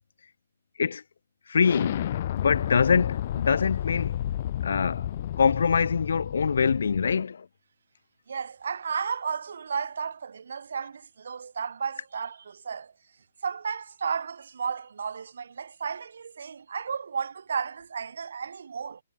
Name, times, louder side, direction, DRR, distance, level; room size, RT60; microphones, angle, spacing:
voice 1, 1.5-2.1 2.4-4.2 4.6-5.1 5.4-7.5, left 6 dB, 70° left, 1.9 m, -24 dB
Explosion, 1.6-7.2, left 11 dB, 45° left, 3.2 m, -31 dB
voice 2, 8.3-12.9 13.4-19.0, right 6 dB, 70° right, 6.9 m, -33 dB
hypercardioid pair, 155°, 0 cm